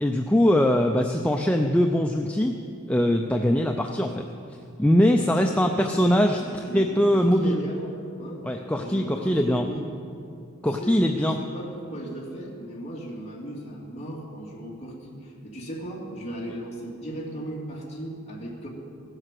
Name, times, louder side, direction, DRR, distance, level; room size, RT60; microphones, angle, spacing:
voice 1, 0.0-2.6 2.9-4.2 4.8-6.4 6.7-7.6 8.4-9.7 10.6-11.4, equal, 5° left, 3 dB, 0.4 m, -22 dB
voice 2, 5.2-8.5 8.8-9.9 10.7-18.7, right 1 dB, 30° left, -4 dB, 2.7 m, -37 dB
16.0 x 7.9 x 7.5 m, 2.5 s
head